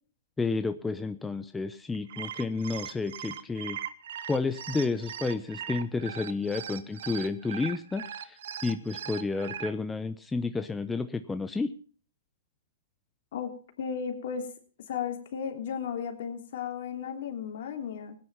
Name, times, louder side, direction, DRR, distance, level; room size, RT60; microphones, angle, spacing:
voice 1, 0.4-3.8 4.3-11.7, left 4 dB, 10° left, 9 dB, 0.8 m, -31 dB
sound 1, 1.9-9.7, right 9 dB, 65° right, 1.3 m, -39 dB
voice 2, 13.8-14.5 14.9-18.1, left 7 dB, 60° left, 4 dB, 3.2 m, -34 dB
17.5 x 10.0 x 5.7 m, 0.42 s
hypercardioid pair, 130°, 0 cm